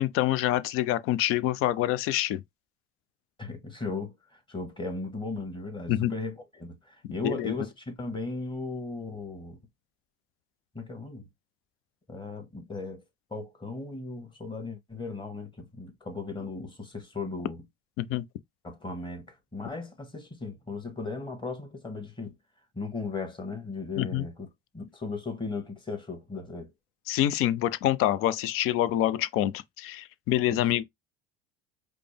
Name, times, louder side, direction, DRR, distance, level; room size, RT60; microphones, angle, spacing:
voice 1, 0.0-2.4 5.9-6.1 7.2-7.5 18.0-18.2 24.0-24.3 27.1-30.8, left 13 dB, 45° left, 0.5 m, -26 dB
voice 2, 3.4-9.6 10.7-11.2 12.1-13.0 13.3-17.6 18.6-22.3 22.7-24.5 24.7-26.7 30.5-30.6, left 3 dB, 15° left, 1.4 m, -37 dB
5.0 x 2.1 x 3.3 m
hypercardioid pair, 70°, 31 cm